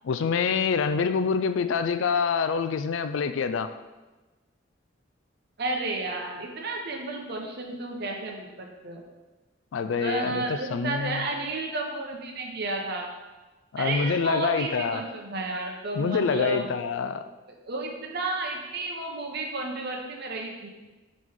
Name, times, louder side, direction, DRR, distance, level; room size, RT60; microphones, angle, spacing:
voice 1, 0.0-3.7 9.7-11.3 13.7-15.0 15.9-17.2, left 5 dB, 85° left, 10 dB, 0.4 m, -26 dB
voice 2, 5.6-9.0 10.0-13.1 13.8-16.7 17.7-20.7, right 2 dB, 60° right, 1 dB, 1.0 m, -32 dB
9.1 x 3.2 x 3.7 m, 1.2 s
head